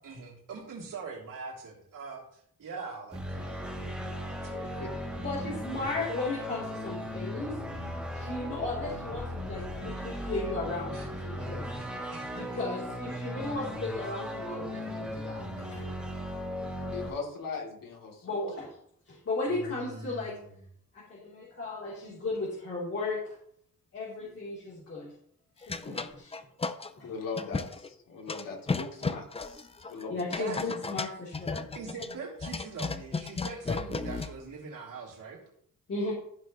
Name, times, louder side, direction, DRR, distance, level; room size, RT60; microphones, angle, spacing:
voice 1, 0.0-3.8 4.2-5.0 10.2-10.3 10.9-11.1 11.4-12.5 19.5-20.6 24.2-24.4 30.4-30.7 31.7-35.4, right 4 dB, 65° right, -3 dB, 3.4 m, -43 dB
sound 1, 3.1-17.1, equal, 5° right, 2.6 m, -37 dB
voice 2, 5.2-7.6 8.1-11.7 12.3-15.8 16.5-16.7 18.2-18.8 19.1-20.4 20.9-23.4 23.9-25.1 25.6-26.4 27.0-27.1 30.1-31.7 35.9-36.1, left 3 dB, 40° left, -7 dB, 3.5 m, -35 dB
voice 3, 16.9-18.3 27.0-30.2, left 4 dB, 70° left, -2 dB, 3.2 m, -39 dB
sound 2, 25.6-26.9 27.4-27.9 28.3-34.4, left 4 dB, 20° left, 0.5 m, -34 dB
14.5 x 6.4 x 3.2 m, 0.67 s
wide cardioid pair, 135°, 34 cm